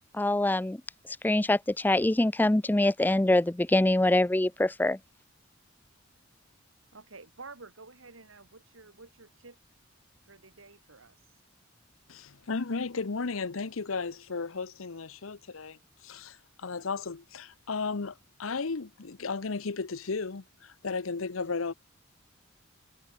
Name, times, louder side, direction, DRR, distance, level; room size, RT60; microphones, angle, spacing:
voice 1, 0.1-0.8 1.2-5.0, left 1 dB, 10° left, 0.4 m, -24 dB
voice 2, 6.9-9.6 10.2-11.4, right 3 dB, 80° right, 2.5 m, -50 dB
voice 3, 12.1-21.7, left 4 dB, 90° left, 0.9 m, -34 dB
head